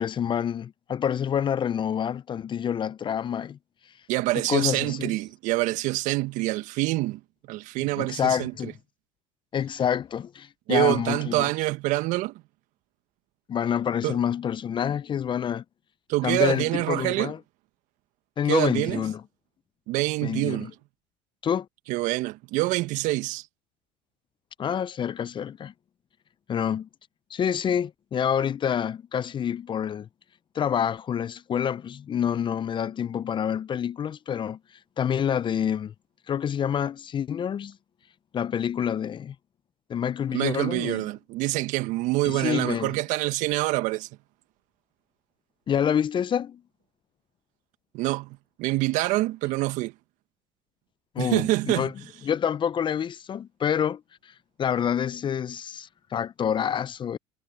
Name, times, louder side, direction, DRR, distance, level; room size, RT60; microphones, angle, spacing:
voice 1, 0.0-3.6 4.5-5.2 8.0-8.7 9.5-11.5 13.5-15.6 16.2-17.4 18.4-19.2 20.2-20.7 21.4-21.7 24.6-25.7 26.5-26.9 27.3-30.1 30.5-34.6 35.0-35.9 36.3-37.8 38.3-39.3 39.9-41.1 42.2-43.0 45.7-46.6 51.1-51.9 52.2-54.3 54.6-57.2, left 8 dB, 35° left, 0.6 m, -27 dB
voice 2, 4.1-7.2 7.5-8.7 10.7-12.3 14.0-14.2 16.1-17.3 18.5-19.0 19.9-20.7 21.9-23.5 40.3-44.1 47.9-49.9 51.2-51.9, right 19 dB, 65° right, 1.6 m, -26 dB
hypercardioid pair, 75°, 14 cm